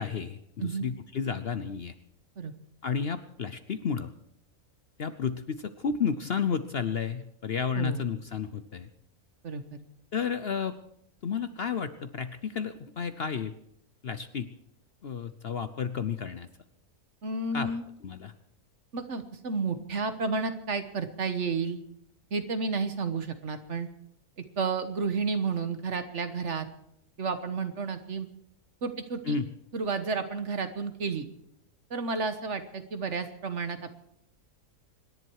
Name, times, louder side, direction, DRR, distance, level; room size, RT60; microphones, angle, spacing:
voice 1, 0.0-1.9 2.8-4.1 5.0-8.9 10.1-10.8 11.2-13.5 14.0-14.5 15.0-16.5 17.5-17.7 18.0-18.3 29.3-29.5, left 6 dB, 50° left, 11 dB, 0.8 m, -32 dB
voice 2, 9.4-9.8 17.2-17.8 18.9-21.8 22.3-23.9 24.6-26.7 27.2-28.3 28.8-29.3 29.7-31.2 31.9-33.9, right 4 dB, 55° right, 9 dB, 1.5 m, -31 dB
26.0 x 11.0 x 4.7 m, 0.75 s
omnidirectional pair, 1.6 m